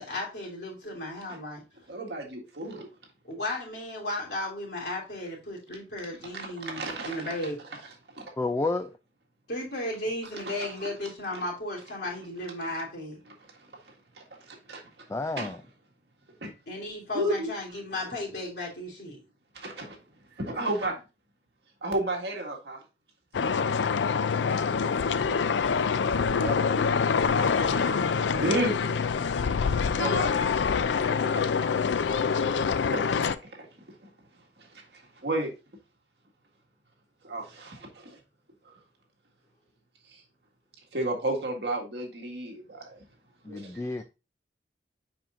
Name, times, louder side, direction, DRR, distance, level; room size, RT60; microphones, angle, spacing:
voice 1, 0.0-1.6 3.2-7.6 9.5-13.2 16.7-19.2 27.2-28.5, left 1 dB, 65° left, 3.1 m, -35 dB
voice 2, 1.9-2.9 6.3-7.3 8.1-8.3 10.4-10.9 11.3-11.4 14.2-14.8 15.4-15.5 16.4-16.5 17.1-17.5 19.5-20.0 20.4-21.0 21.8-22.8 25.9-26.1 26.4-26.6 27.3-27.7 28.2-28.8 30.0-30.3 31.3-31.5 32.4-32.5 32.9-33.7 34.6-34.7 34.9-35.5 37.2-38.2 38.6-38.7 40.1-40.2 40.9-43.0 43.5-44.0, right 1 dB, 70° right, 1.8 m, -33 dB
voice 3, 8.4-8.9 15.1-15.6 43.4-44.0, left 2 dB, 15° left, 0.3 m, -30 dB
sound 1, 23.3-33.4, left 6 dB, 85° left, 0.4 m, -25 dB
7.5 x 5.4 x 2.5 m
head